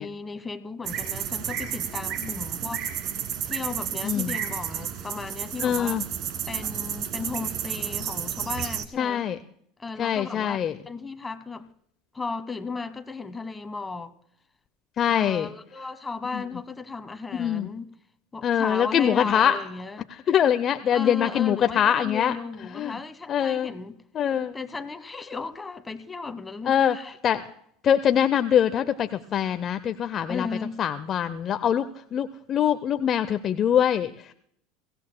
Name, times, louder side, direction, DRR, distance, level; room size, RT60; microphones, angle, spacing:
voice 1, 0.0-2.9 3.4-6.0 6.5-9.3 9.8-10.6 10.8-11.7 12.1-14.1 15.1-17.9 18.3-20.1 20.9-24.0 24.5-27.1 30.3-30.8, left 4 dB, 15° left, 1.1 m, -35 dB
sound 1, 0.8-8.8, right 9 dB, 55° right, 1.5 m, -31 dB
voice 2, 4.0-4.4 5.6-6.0 9.0-9.4 10.0-10.8 15.0-15.5 16.3-16.4 17.3-17.7 18.4-19.6 20.3-22.3 22.7-23.0 23.3-23.7 24.1-24.6 26.7-27.0 27.2-27.5 27.8-30.5 30.8-34.3, left 9 dB, 40° left, 0.6 m, -23 dB
23.5 x 16.0 x 2.2 m
hypercardioid pair, 85°, 0 cm